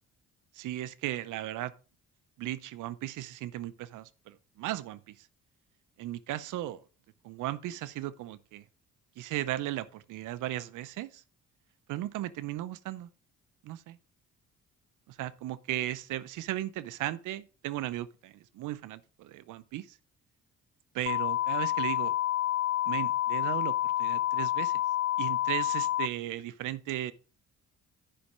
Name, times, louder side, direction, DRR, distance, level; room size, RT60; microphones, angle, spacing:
voice 1, 0.5-1.7 2.4-5.3 6.0-6.8 7.2-8.6 9.2-11.2 11.9-13.1 13.6-14.0 15.1-20.0 20.9-22.1 22.9-24.8 25.2-27.1, right 14 dB, 85° right, 0.6 m, -36 dB
sound 1, 21.1-26.1, left 13 dB, 40° left, 0.6 m, -29 dB
10.0 x 5.4 x 5.1 m
cardioid pair, 90°, 30 cm